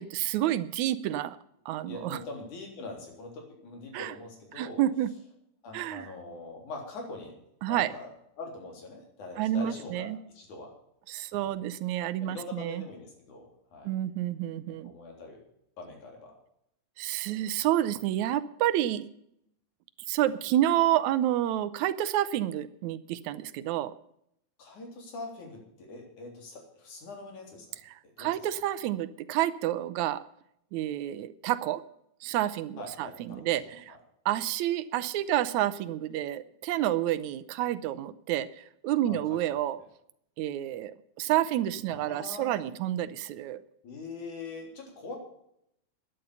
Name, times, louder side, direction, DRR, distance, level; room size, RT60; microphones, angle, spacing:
voice 1, 0.0-1.4 1.7-2.2 3.9-4.1 4.6-5.1 5.7-6.1 7.6-7.9 9.4-10.2 11.1-12.8 13.8-14.9 17.0-19.1 20.1-23.9 27.9-30.2 30.7-31.8 32.2-34.0 34.3-39.8 40.4-43.6, right 13 dB, 80° right, 15 dB, 2.0 m, -29 dB
voice 2, 1.8-4.8 5.6-7.4 7.7-8.1 8.4-10.7 11.3-11.6 12.2-13.9 14.7-15.4 15.8-16.3 24.6-27.8 28.0-28.3 32.8-33.7 39.0-39.6 41.9-42.7 43.8-45.2, left 3 dB, 85° left, 1 dB, 4.9 m, -43 dB
12.5 x 10.0 x 6.9 m, 0.75 s
omnidirectional pair, 3.4 m